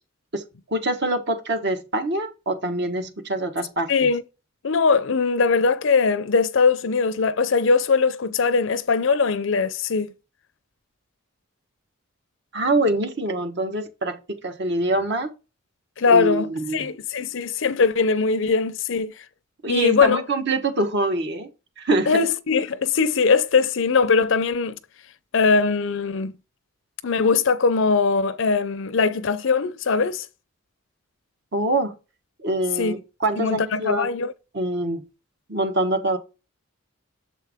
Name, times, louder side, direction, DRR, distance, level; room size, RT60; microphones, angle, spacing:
voice 1, 0.7-4.1 12.5-15.3 16.1-16.9 19.6-21.5 21.8-22.3 31.5-31.9 32.4-34.1 34.5-35.0 35.5-36.2, right 1 dB, 55° right, 1.2 m, -24 dB
voice 2, 3.9-4.2 4.6-10.1 16.0-19.1 19.7-20.2 22.1-24.8 25.3-26.3 27.0-30.2 32.8-32.9 33.4-34.3, left 4 dB, 60° left, 0.5 m, -21 dB
7.2 x 4.5 x 3.5 m
head